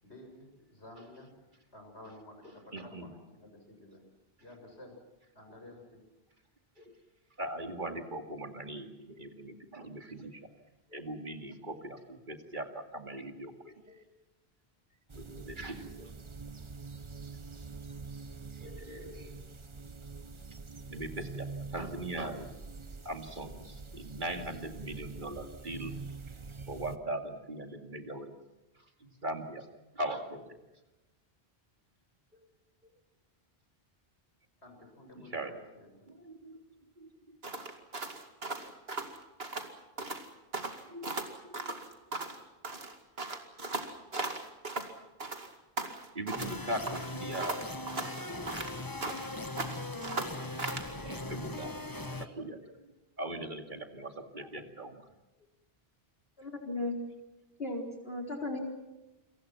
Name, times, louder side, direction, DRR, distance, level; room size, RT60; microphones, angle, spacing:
voice 1, 0.0-1.3 1.7-4.0 4.4-5.0 5.4-6.0 34.6-36.1, left 1 dB, 90° left, 3 dB, 7.2 m, -52 dB
voice 2, 2.7-3.1 6.8-6.9 7.4-10.4 10.9-14.0 15.2-16.1 18.6-19.4 20.9-21.5 21.7-22.5 23.0-25.9 26.7-28.3 29.0-29.7 30.0-30.5 32.4-32.5 35.3-35.5 36.1-36.6 37.0-37.4 40.9-41.2 41.4-41.7 46.1-47.6 50.9-51.8 52.2-52.9 53.2-55.0, right 1 dB, 50° right, 5 dB, 2.5 m, -40 dB
sound 1, 15.1-27.0, right 4 dB, 30° right, 1.0 m, -45 dB
sound 2, 37.4-39.7 40.0-40.3 40.5-42.4 42.6-44.9 45.2-46.6 46.9-49.3 49.6-50.9, right 3 dB, 70° right, 2.6 m, -37 dB
sound 3, 46.4-52.3, left 2 dB, 20° left, 1.4 m, -40 dB
voice 3, 56.4-57.0 57.6-58.6, left 2 dB, 65° left, 2 dB, 4.7 m, -36 dB
29.0 x 23.5 x 6.0 m, 1.1 s
omnidirectional pair, 1.1 m